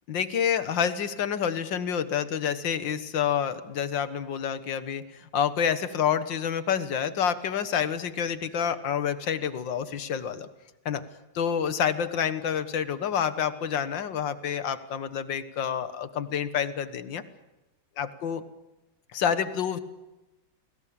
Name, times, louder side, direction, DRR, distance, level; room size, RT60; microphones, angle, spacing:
voice 1, 0.1-10.5 10.9-11.0 11.4-17.2 18.0-18.4 19.1-19.8, left 8 dB, 75° left, 12 dB, 2.1 m, -28 dB
30.0 x 20.0 x 8.7 m, 1.0 s
omnidirectional pair, 2.1 m